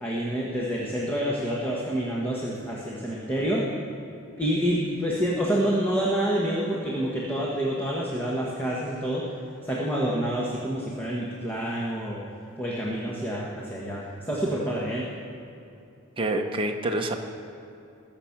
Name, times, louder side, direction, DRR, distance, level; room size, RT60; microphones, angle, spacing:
voice 1, 0.0-3.6 4.4-9.3 9.6-12.2 12.6-15.1, right 1 dB, 10° left, -4 dB, 1.3 m, -28 dB
voice 2, 16.2-17.1, right 1 dB, 25° right, 2 dB, 0.8 m, -27 dB
20.0 x 7.0 x 5.9 m, 2.7 s
head